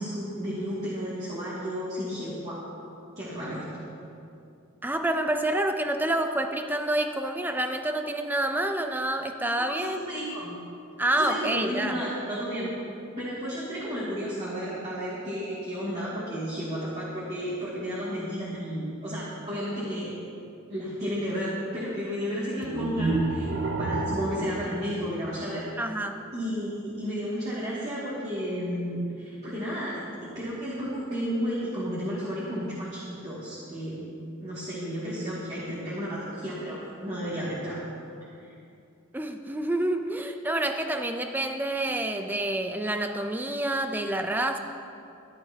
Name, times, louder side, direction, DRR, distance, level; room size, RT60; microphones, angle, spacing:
voice 1, 0.0-2.6 3.2-3.6 9.6-10.6 11.1-12.7 13.2-20.1 20.7-23.5 23.8-25.7 26.3-34.0 34.4-37.8 38.4-38.5, equal, 30° right, -10 dB, 2.4 m, -32 dB
voice 2, 4.8-10.0 11.0-12.0 25.8-26.2 39.1-44.6, right 1 dB, 10° right, 6 dB, 0.5 m, -28 dB
sound 1, 22.6-25.8, right 2 dB, 60° right, 0.7 m, -30 dB
14.0 x 12.5 x 2.9 m, 2.6 s
head